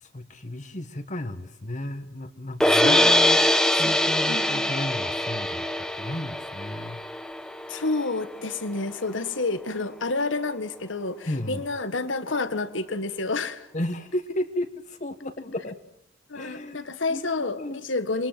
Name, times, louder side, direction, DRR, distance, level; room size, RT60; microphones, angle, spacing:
voice 1, 0.0-3.4 3.7-7.0 11.3-11.6 13.7-15.8 16.3-17.8, left 1 dB, 40° left, 9 dB, 1.6 m, -34 dB
sound 1, 2.6-8.8, left 1 dB, 5° left, 1.1 m, -23 dB
voice 2, 2.7-3.2 3.8-4.0 4.3-4.7 7.7-13.7 16.3-18.3, left 3 dB, 90° left, 12 dB, 1.6 m, -29 dB
27.5 x 23.5 x 7.7 m, 0.72 s
head